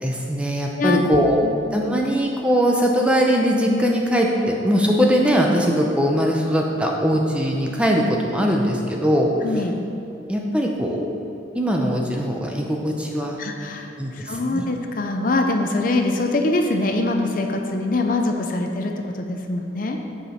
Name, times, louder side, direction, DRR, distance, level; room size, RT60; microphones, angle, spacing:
voice 1, 0.0-1.4 1.7-9.3 10.3-11.1 11.5-13.4 14.0-14.6, equal, 5° right, 0 dB, 0.6 m, -21 dB
voice 2, 9.4-9.8 13.4-20.0, left 2 dB, 45° left, 3 dB, 0.5 m, -23 dB
7.9 x 5.0 x 5.7 m, 2.7 s
head